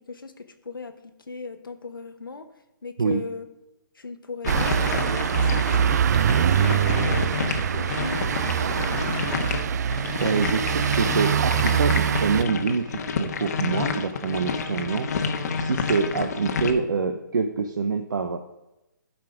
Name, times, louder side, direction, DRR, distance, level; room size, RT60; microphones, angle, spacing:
voice 1, 0.1-1.0 1.3-2.5 2.8-3.5 3.9-7.4 7.7-9.2, left 4 dB, 85° left, 6 dB, 1.2 m, -38 dB
sound 1, 4.4-16.7, left 5 dB, 50° left, 1.1 m, -30 dB
sound 2, 4.5-12.4, right 8 dB, 50° right, 0.4 m, -23 dB
voice 2, 10.2-15.2 15.6-18.4, right 5 dB, 70° right, 6 dB, 0.9 m, -26 dB
12.0 x 5.1 x 4.9 m, 0.94 s
hypercardioid pair, 145°, 11 cm